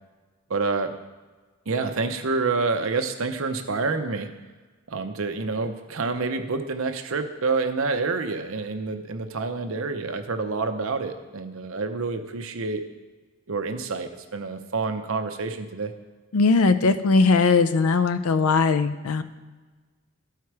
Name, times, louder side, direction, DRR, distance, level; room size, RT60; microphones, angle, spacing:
voice 1, 0.5-0.9 1.7-4.3 4.9-12.8 13.5-15.9, right 4 dB, 75° right, 7 dB, 0.7 m, -28 dB
voice 2, 16.3-19.2, left 4 dB, 85° left, 12 dB, 0.5 m, -19 dB
12.0 x 4.6 x 4.7 m, 1.3 s
head